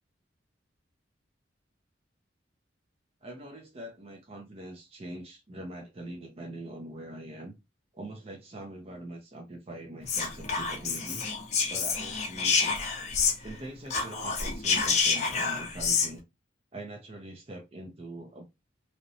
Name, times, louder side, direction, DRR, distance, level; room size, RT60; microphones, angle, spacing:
voice 1, 3.2-7.5 7.9-11.3 11.7-12.8 13.4-16.2 16.7-18.4, right 1 dB, 30° right, 0.4 m, -43 dB
Whispering, 10.0-13.6 13.9-16.1, left 5 dB, 35° left, 0.5 m, -28 dB
2.8 x 2.1 x 2.5 m
head